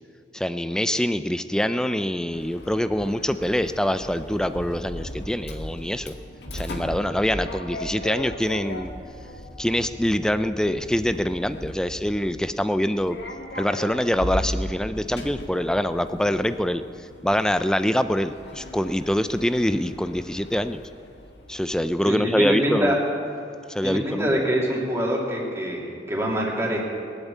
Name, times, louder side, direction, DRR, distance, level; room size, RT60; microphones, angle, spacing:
voice 1, 0.3-6.1 6.5-8.9 9.6-13.2 13.6-16.8 17.2-20.8 21.5-22.9 23.7-24.4, equal, 5° left, 11 dB, 0.4 m, -25 dB
Sliding door, 2.3-21.9, left 1 dB, 65° left, 1.8 m, -37 dB
voice 2, 22.0-23.0 23.8-26.8, equal, 15° right, -3 dB, 2.8 m, -25 dB
21.0 x 8.2 x 8.4 m, 2.5 s
head